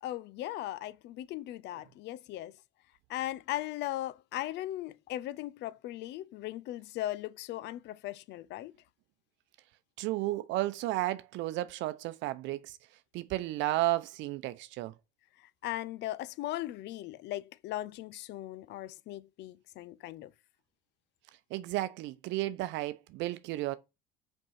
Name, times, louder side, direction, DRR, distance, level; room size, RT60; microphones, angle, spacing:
voice 1, 0.0-2.6 3.1-8.8 15.4-20.3, left 14 dB, 60° left, 0.6 m, -38 dB
voice 2, 10.0-12.8 13.1-14.9 21.5-23.8, right 16 dB, 65° right, 0.7 m, -33 dB
5.3 x 4.6 x 5.6 m
hypercardioid pair, 65°, 21 cm